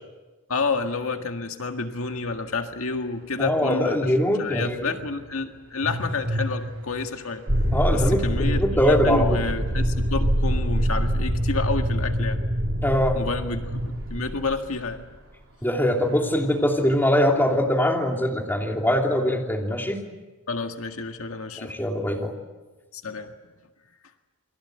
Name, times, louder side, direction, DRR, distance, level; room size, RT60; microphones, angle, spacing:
voice 1, 0.5-7.5 7.9-12.4 13.1-15.1 20.5-21.7 22.9-23.3, left 4 dB, 75° left, 5 dB, 1.8 m, -29 dB
sound 1, 2.1-12.3 13.7-15.6 15.9-17.6, equal, 80° right, 2.6 m, -38 dB
voice 2, 3.4-4.7 7.7-9.4 12.8-13.2 15.6-20.0 21.6-22.3, equal, 10° left, 0 dB, 3.1 m, -22 dB
sound 2, 7.5-14.9, equal, 65° right, 4.2 m, -25 dB
29.0 x 22.5 x 8.0 m, 1.2 s
head